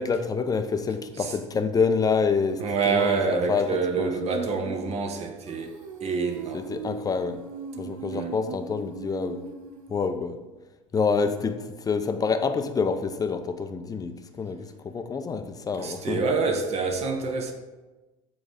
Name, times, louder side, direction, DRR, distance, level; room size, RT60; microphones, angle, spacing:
voice 1, 0.0-3.2 3.5-3.7 4.0-4.1 6.5-7.4 7.8-9.4 9.9-10.4 10.9-16.2, left 5 dB, 20° left, 0.7 m, -27 dB
Female singing, 2.5-10.2, right 5 dB, 90° right, 0.7 m, -39 dB
voice 2, 2.6-6.8 8.1-8.3 15.8-17.5, right 4 dB, 40° right, 1.0 m, -27 dB
7.4 x 3.9 x 5.0 m
hypercardioid pair, 85°, 17 cm